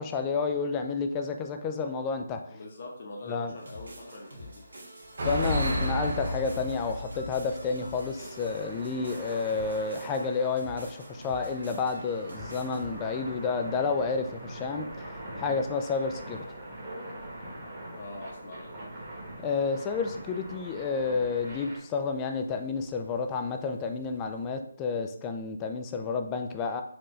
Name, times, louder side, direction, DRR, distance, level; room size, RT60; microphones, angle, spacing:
voice 1, 0.0-2.4 3.3-3.5 5.2-14.9 15.4-16.4 19.4-26.8, left 4 dB, 15° left, 6 dB, 0.3 m, -30 dB
voice 2, 2.5-4.6 18.0-18.9, left 2 dB, 45° left, -2 dB, 0.9 m, -43 dB
sound 1, 3.4-21.8, right 1 dB, 20° right, 1.2 m, -43 dB
sound 2, 3.6-14.7, equal, 80° right, 1.6 m, -47 dB
sound 3, 5.0-9.6 9.9-10.0 11.2-11.4 13.6-14.8 15.8-16.0 16.5-16.6 17.0-17.1 19.0-19.1 19.8-19.9 22.2-22.5 23.0-23.4 23.9-24.4, equal, 55° right, 0.9 m, -34 dB
4.4 x 2.5 x 3.2 m, 0.65 s
hypercardioid pair, 165°, 0 cm